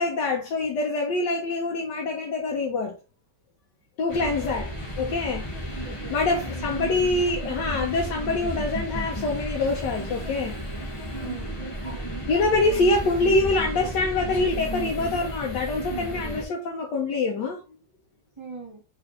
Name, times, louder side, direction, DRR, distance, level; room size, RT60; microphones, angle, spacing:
voice 1, 0.0-2.9 4.0-10.6 12.3-17.6, left 3 dB, 80° left, 1.5 m, -25 dB
sound 1, 4.1-16.5, equal, 20° left, 1.2 m, -33 dB
voice 2, 4.8-5.2 5.8-6.7 11.2-12.2 18.4-18.8, right 4 dB, 20° right, 1.1 m, -44 dB
4.0 x 3.3 x 3.9 m
omnidirectional pair, 1.8 m